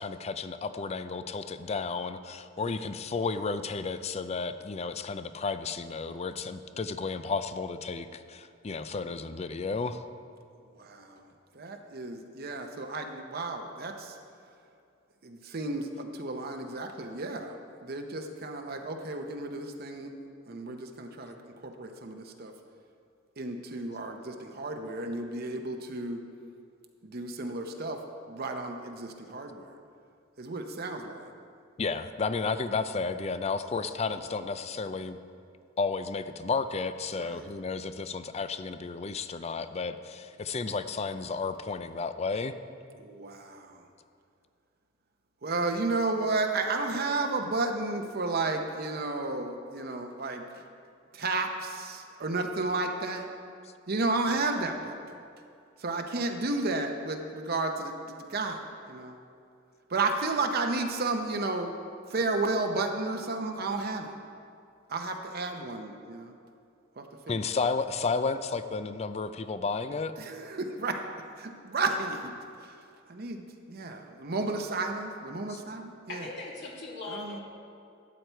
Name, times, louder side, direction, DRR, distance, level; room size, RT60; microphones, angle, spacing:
voice 1, 0.0-10.0 31.8-35.2 35.8-42.5 67.3-70.1 75.5-75.6, left 4 dB, 35° left, 11 dB, 0.4 m, -32 dB
voice 2, 10.8-11.2 11.5-14.1 15.2-17.6 17.8-20.1 20.5-22.5 23.4-26.2 27.0-28.0 28.3-29.6 30.4-31.3 37.2-37.5 43.0-43.8 45.4-50.5 51.1-53.3 53.9-55.0 55.8-59.2 59.9-61.7 62.1-64.1 64.9-66.3 67.0-67.3 70.2-71.0 71.4-72.3 72.6-72.7 73.1-76.3 77.1-77.4, right 3 dB, 55° right, 4 dB, 0.8 m, -32 dB
voice 3, 76.1-77.4, left 2 dB, 65° left, -3 dB, 2.2 m, -39 dB
12.5 x 8.4 x 4.5 m, 2.5 s
head